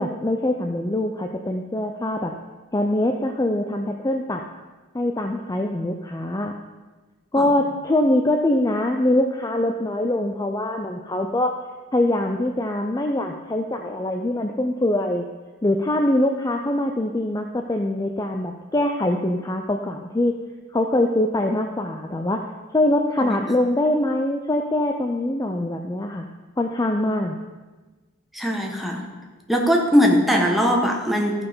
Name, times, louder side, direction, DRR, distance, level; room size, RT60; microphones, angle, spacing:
voice 1, 0.0-2.3 2.7-4.4 4.9-6.5 7.3-11.6 11.9-15.3 15.6-20.3 20.7-22.4 22.7-26.3 26.6-27.4, left 1 dB, 15° left, 4 dB, 0.4 m, -23 dB
voice 2, 28.3-29.0 29.5-31.4, equal, ahead, 0 dB, 1.1 m, -20 dB
14.0 x 5.5 x 5.5 m, 1.3 s
head